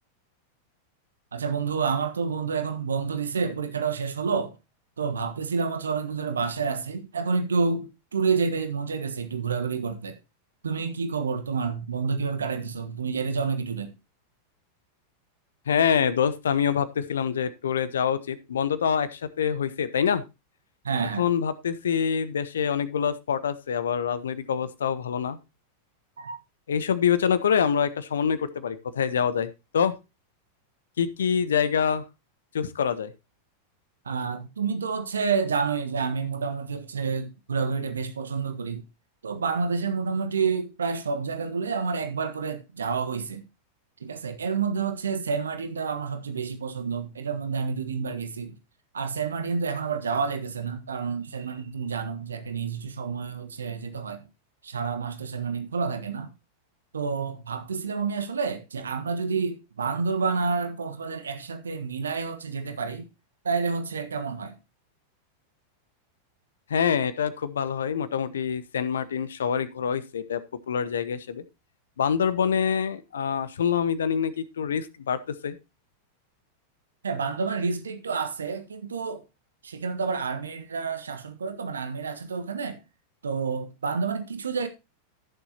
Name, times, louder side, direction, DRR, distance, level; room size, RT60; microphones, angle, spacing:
voice 1, 1.3-4.6 5.0-10.2 10.6-13.9 20.8-21.3 26.2-26.4 34.0-38.8 39.2-43.4 44.0-48.5 48.9-54.3 54.6-56.3 56.9-63.1 63.4-64.6 77.0-79.2 79.6-82.8 83.2-84.7, right 5 dB, 70° right, 1.3 m, -29 dB
voice 2, 15.7-20.2 21.2-25.4 26.7-29.9 31.0-32.0 32.5-33.1 66.7-70.4 70.7-71.4 72.0-75.6, left 7 dB, 65° left, 1.1 m, -25 dB
15.5 x 7.1 x 2.9 m
figure-of-eight pair, 90°, 0 cm